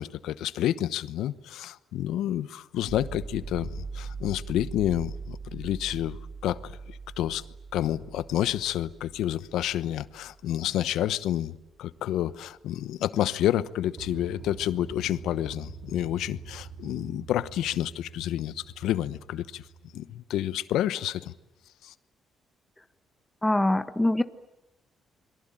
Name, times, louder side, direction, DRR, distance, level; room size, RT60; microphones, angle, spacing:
voice 1, 0.0-6.2 6.4-6.7 7.2-7.4 7.7-19.6 19.9-21.3 21.8-21.9, left 12 dB, 85° left, 16 dB, 1.0 m, -29 dB
sound 1, 2.9-10.7 14.0-20.0, right 5 dB, 60° right, 4.6 m, -42 dB
voice 2, 23.4-24.2, left 1 dB, 10° left, 11 dB, 1.2 m, -23 dB
28.5 x 23.0 x 9.0 m, 0.92 s
cardioid pair, 90°, 0 cm